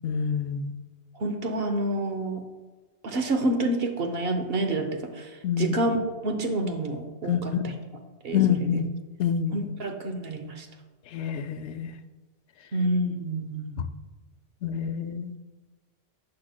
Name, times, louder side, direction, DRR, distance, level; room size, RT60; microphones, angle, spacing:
voice 1, 0.0-0.7 5.4-5.7 7.3-7.8 8.3-8.9 9.2-9.7 11.1-11.9 13.8-13.9 14.6-15.4, left 7 dB, 85° left, 9 dB, 0.9 m, -27 dB
voice 2, 1.1-2.4 3.0-5.3 5.6-6.0 6.2-7.7 8.2-8.8 9.5-10.7 12.7-13.9, right 1 dB, 60° right, 6 dB, 1.0 m, -28 dB
10.5 x 6.7 x 2.2 m, 1.2 s
omnidirectional pair, 1.1 m